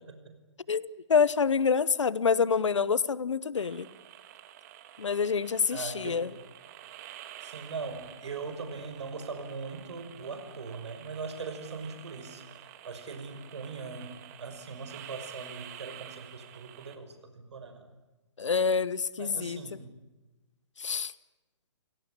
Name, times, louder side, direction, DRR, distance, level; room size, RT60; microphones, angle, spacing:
voice 1, 0.7-3.9 5.0-6.3 18.4-19.6 20.8-21.1, left 5 dB, 75° left, 18 dB, 1.2 m, -27 dB
sound 1, 3.6-17.0, right 12 dB, 35° right, 2.0 m, -49 dB
voice 2, 5.7-6.2 7.4-14.1 14.4-17.9 19.2-19.9, right 4 dB, 65° right, 8 dB, 5.8 m, -40 dB
29.0 x 18.0 x 9.9 m, 1.1 s
hypercardioid pair, 145°, 16 cm